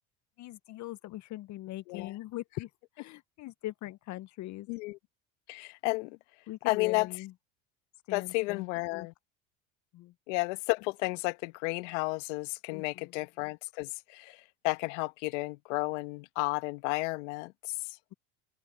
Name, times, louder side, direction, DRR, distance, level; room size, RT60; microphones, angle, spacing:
voice 1, 0.4-4.7 6.5-7.3 8.1-9.1 9.9-10.1 12.7-13.2, left 16 dB, 50° left, 0.8 m, -41 dB
voice 2, 4.7-5.0 5.5-6.2 6.6-7.1 8.1-9.1 10.3-18.0, left 24 dB, 75° left, 1.3 m, -32 dB
hypercardioid pair, 85°, 36 cm